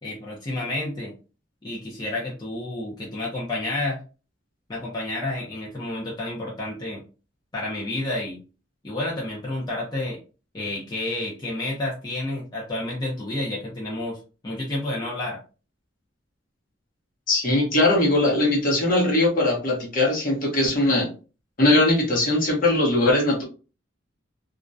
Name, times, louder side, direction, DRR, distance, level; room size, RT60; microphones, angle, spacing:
voice 1, 0.0-1.1 1.6-4.0 4.7-7.0 7.5-8.4 8.8-10.2 10.5-14.2 14.4-15.4, left 2 dB, 20° left, -5 dB, 0.5 m, -30 dB
voice 2, 17.3-21.1 21.6-23.4, left 2 dB, 45° left, -1 dB, 0.8 m, -20 dB
2.3 x 2.1 x 2.5 m, 0.34 s
head